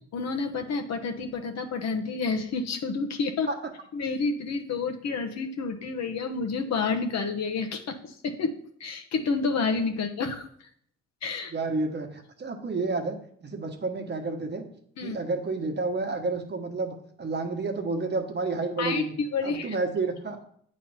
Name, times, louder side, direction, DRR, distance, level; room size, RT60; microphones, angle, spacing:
voice 1, 0.1-3.5 3.9-10.7 11.2-11.5 15.0-15.2 18.8-19.8, left 4 dB, 60° left, 5 dB, 0.9 m, -29 dB
voice 2, 11.5-14.7 15.0-19.1 19.4-20.4, right 3 dB, 35° right, 4 dB, 1.1 m, -30 dB
8.4 x 3.2 x 5.6 m, 0.64 s
cardioid pair, 90°, 30 cm